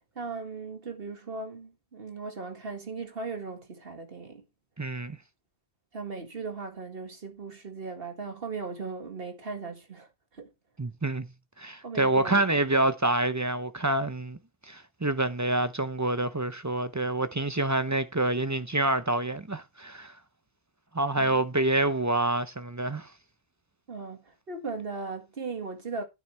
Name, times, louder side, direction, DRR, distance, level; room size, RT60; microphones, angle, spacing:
voice 1, 0.2-4.4 5.9-10.1 10.3-10.5 11.8-12.4 21.2-21.4 23.9-26.0, right 4 dB, 60° right, 2.1 m, -38 dB
voice 2, 4.8-5.2 10.8-11.3 11.6-14.4 14.7-20.1 20.9-23.1, right 2 dB, 20° right, 0.5 m, -27 dB
9.3 x 9.2 x 3.3 m
omnidirectional pair, 1.1 m